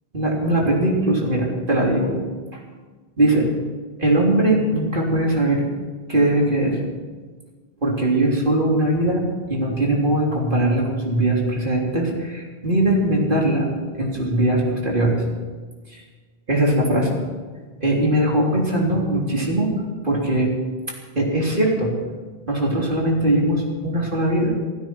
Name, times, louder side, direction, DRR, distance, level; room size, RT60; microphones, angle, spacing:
voice 1, 0.1-2.2 2.5-2.6 3.2-3.5 4.0-5.6 6.1-6.8 7.8-9.2 9.5-13.7 14.0-15.2 15.9-16.0 16.5-17.2 17.8-19.7 20.0-20.5 21.2-21.9 22.5-24.5, right 1 dB, 55° right, -2 dB, 3.7 m, -20 dB
30.0 x 10.0 x 4.7 m, 1.4 s
omnidirectional pair, 1.1 m